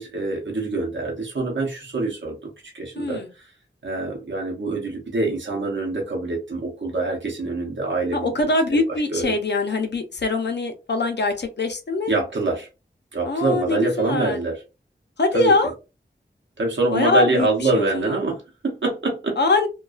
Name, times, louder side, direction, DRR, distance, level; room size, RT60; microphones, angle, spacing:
voice 1, 0.0-2.4 2.6-3.5 3.8-8.8 9.1-9.4 12.1-12.7 13.1-14.6 15.3-15.5 16.6-19.4, right 3 dB, 85° right, -1 dB, 0.7 m, -25 dB
voice 2, 3.0-3.3 8.1-12.2 13.2-14.4 15.2-15.7 16.9-17.5 17.7-18.1 19.4-19.7, left 3 dB, 65° left, 6 dB, 0.6 m, -22 dB
2.3 x 2.3 x 2.3 m, 0.29 s
wide cardioid pair, 55°, 19 cm